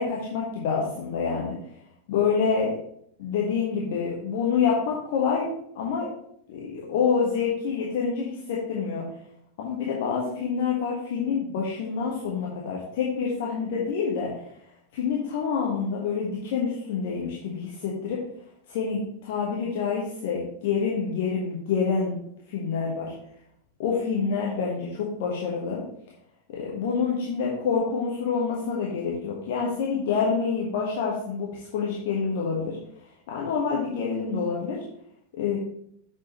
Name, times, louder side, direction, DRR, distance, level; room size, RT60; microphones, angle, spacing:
voice 1, 0.0-1.5 2.1-2.7 3.2-6.1 6.5-9.0 9.6-14.3 14.9-18.2 18.7-22.1 22.5-23.1 23.8-25.8 26.5-32.8 33.3-34.8 35.3-35.6, left 5 dB, 55° left, -3 dB, 1.4 m, -27 dB
7.9 x 6.3 x 3.1 m, 0.69 s
figure-of-eight pair, 90°, 0 cm